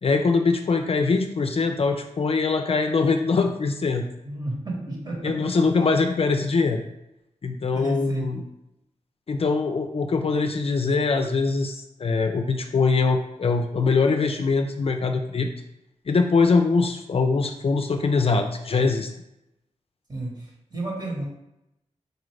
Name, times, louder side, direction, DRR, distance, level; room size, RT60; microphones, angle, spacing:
voice 1, 0.0-4.0 5.2-6.8 7.4-8.4 9.3-15.5 16.1-19.1, left 4 dB, 50° left, 5 dB, 0.4 m, -22 dB
voice 2, 4.2-5.5 7.4-8.4 20.1-21.2, right 1 dB, 35° right, -2 dB, 1.2 m, -32 dB
4.1 x 2.5 x 3.1 m, 0.86 s
cardioid pair, 60°, 13 cm